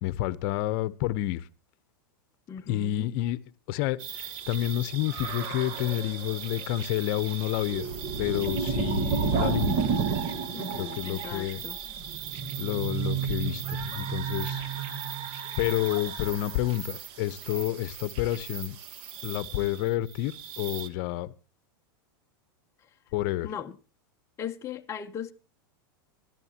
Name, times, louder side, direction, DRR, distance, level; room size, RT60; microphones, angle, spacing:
voice 1, 0.0-1.4 2.7-7.9 8.2-9.9 10.7-11.6 12.6-14.6 15.6-18.8 19.2-21.3 23.1-23.5, left 14 dB, 55° left, 0.9 m, -29 dB
voice 2, 2.5-3.1 10.5-11.8 23.4-23.8 24.4-25.3, left 8 dB, 25° left, 0.8 m, -38 dB
sound 1, 4.0-20.9, right 6 dB, 50° right, 1.7 m, -33 dB
24.5 x 12.5 x 2.9 m
hypercardioid pair, 120°, 12 cm